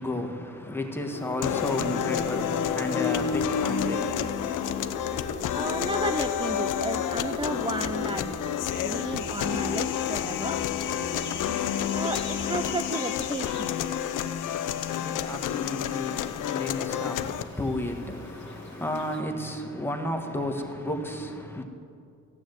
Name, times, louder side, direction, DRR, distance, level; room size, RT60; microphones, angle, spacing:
voice 1, 0.0-5.1 14.5-21.6, left 1 dB, 5° left, 1.4 m, -33 dB
sound 1, 1.1-19.2, left 3 dB, 40° left, 2.4 m, -38 dB
sound 2, 1.4-17.4, left 10 dB, 80° left, 0.7 m, -30 dB
sound 3, 3.2-12.8, right 2 dB, 35° right, 1.1 m, -46 dB
voice 2, 5.5-10.6 11.9-13.7, right 3 dB, 15° right, 0.4 m, -33 dB
15.5 x 9.8 x 8.0 m
cardioid pair, 140°, 31 cm